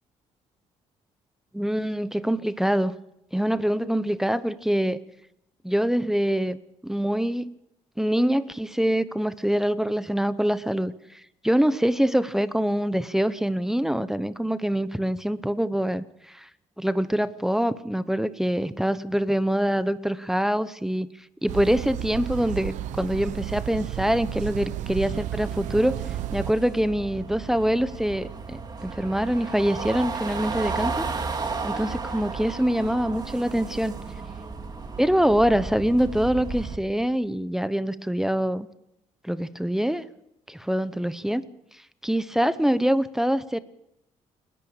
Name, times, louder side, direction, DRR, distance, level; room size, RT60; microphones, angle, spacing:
voice 1, 1.5-2.9 3.3-5.0 5.6-6.6 6.8-7.6 8.0-16.5 16.8-21.1 21.4-31.0 31.6-34.0 35.0-38.7 39.2-40.0 40.5-41.4 42.0-43.6, equal, 5° right, 14 dB, 0.9 m, -24 dB
sound 1, 21.5-26.5, right 12 dB, 85° right, 0.8 m, -32 dB
sound 2, 25.1-36.8, right 4 dB, 35° right, 2.5 m, -34 dB
29.0 x 11.0 x 8.8 m, 0.82 s
cardioid pair, 105°, 12 cm